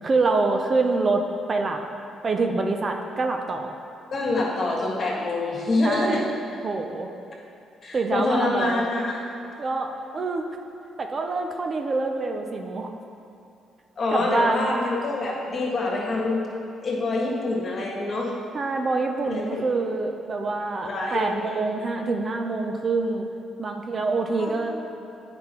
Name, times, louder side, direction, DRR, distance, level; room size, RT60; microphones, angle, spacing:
voice 1, 0.0-1.2 1.5-1.8 2.2-3.8 5.8-6.3 6.6-7.1 7.9-8.8 9.6-10.5 11.0-12.9 14.1-14.8 18.5-23.3 23.6-24.7, right 3 dB, 40° right, 4 dB, 0.5 m, -26 dB
voice 2, 4.1-6.3 7.8-9.2 14.0-16.5 16.8-18.3 19.3-19.6 20.8-21.5 24.4-24.5, left 2 dB, 45° left, -3 dB, 1.5 m, -26 dB
9.3 x 5.1 x 3.0 m, 2.6 s
cardioid pair, 90°, 0 cm